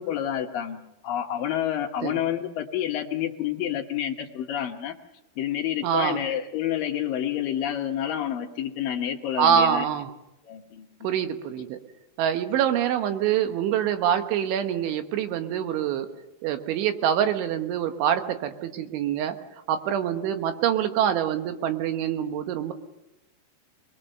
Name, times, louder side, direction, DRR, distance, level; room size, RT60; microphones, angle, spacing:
voice 1, 0.0-5.0 5.4-9.9 10.4-11.1, left 10 dB, 70° left, 4 dB, 2.1 m, -29 dB
voice 2, 5.8-6.2 9.4-10.1 11.0-11.8 12.2-16.1 16.4-19.4 19.7-22.7, right 9 dB, 80° right, 8 dB, 3.6 m, -25 dB
27.0 x 21.5 x 6.7 m, 0.93 s
omnidirectional pair, 5.5 m